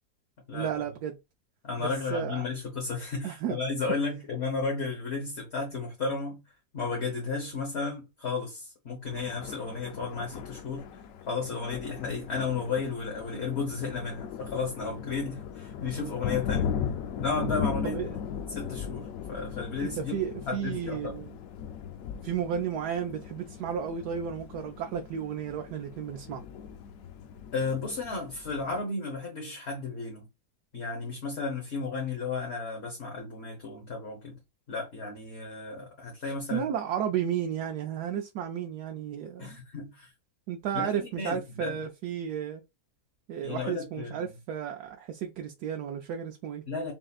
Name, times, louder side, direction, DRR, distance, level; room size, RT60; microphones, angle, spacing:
voice 1, 0.5-1.2 1.8-2.4 3.2-3.6 17.8-18.1 19.8-21.3 22.2-26.4 36.5-39.6 40.5-42.6 43.3-46.6, right 8 dB, 75° right, 1.1 m, -33 dB
voice 2, 1.6-6.4 6.7-11.0 11.3-16.8 17.2-18.0 18.5-20.2 20.5-21.2 27.5-30.3 30.7-34.4 34.7-36.7 39.4-40.1 40.7-41.8 43.4-44.3 46.7-46.9, left 4 dB, 45° left, 1.3 m, -33 dB
Thunder, 9.0-28.8, left 7 dB, 70° left, 0.9 m, -38 dB
5.5 x 2.7 x 2.4 m
omnidirectional pair, 1.8 m